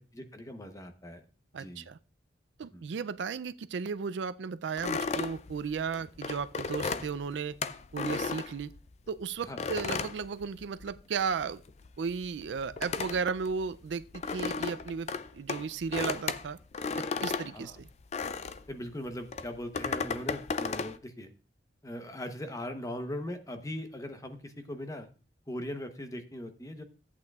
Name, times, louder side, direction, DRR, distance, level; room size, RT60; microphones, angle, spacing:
voice 1, 0.1-1.2 1.5-1.9 2.7-2.8 9.4-9.7 17.5-17.8 18.7-21.3 21.8-25.1 25.5-26.8, left 1 dB, 20° left, 0.9 m, -40 dB
voice 2, 1.5-2.0 2.6-7.6 7.9-8.7 9.1-11.6 12.0-16.6 17.2-17.9, right 5 dB, 70° right, 0.4 m, -35 dB
sound 1, 4.8-9.1 9.6-11.1 11.3-18.7 19.3-21.0, left 4 dB, 40° left, 0.4 m, -35 dB
14.0 x 8.5 x 2.4 m
head